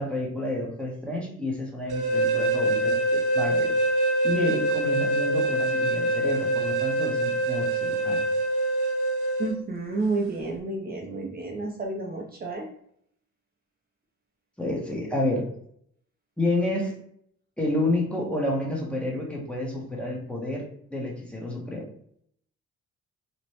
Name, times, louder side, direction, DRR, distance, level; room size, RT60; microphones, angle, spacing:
voice 1, 0.0-3.7 4.2-8.2 14.6-15.5 16.4-16.9 17.6-20.6 20.9-21.8, left 1 dB, 5° left, -2 dB, 0.8 m, -29 dB
sound 1, 1.9-9.5, right 2 dB, 85° right, 0.7 m, -25 dB
voice 2, 9.4-12.7, right 3 dB, 30° right, -1 dB, 0.5 m, -30 dB
3.0 x 2.1 x 2.8 m, 0.69 s
cardioid pair, 90°, 30 cm